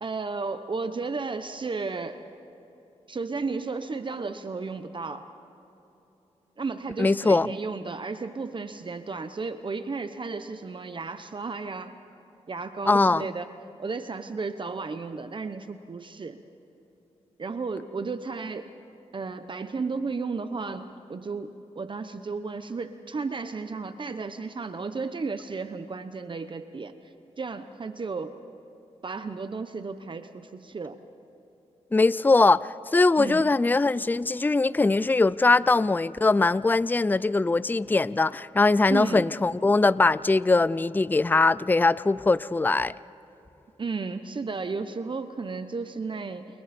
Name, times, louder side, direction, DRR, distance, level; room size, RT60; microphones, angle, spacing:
voice 1, 0.0-2.2 3.1-5.3 6.6-11.9 12.5-13.5 13.8-16.4 17.4-18.7 19.1-26.9 27.4-28.3 29.0-31.0 33.2-33.4 38.9-39.3 43.8-46.5, right 4 dB, 45° right, 9 dB, 1.0 m, -33 dB
voice 2, 7.0-7.6 12.9-13.2 31.9-42.9, left 3 dB, 15° left, 18 dB, 0.4 m, -21 dB
29.0 x 29.0 x 4.4 m, 2.9 s
cardioid pair, 75°, 12 cm